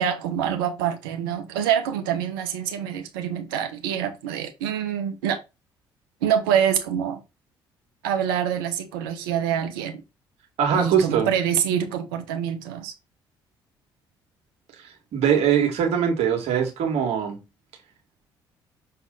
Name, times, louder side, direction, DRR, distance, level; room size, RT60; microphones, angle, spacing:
voice 1, 0.0-5.4 6.2-7.2 8.0-10.0 10.7-12.9, right 9 dB, 80° right, 1.2 m, -25 dB
voice 2, 10.6-11.3 15.1-17.4, right 8 dB, 65° right, 2.4 m, -21 dB
6.7 x 4.2 x 4.0 m
hypercardioid pair, 45°, 12 cm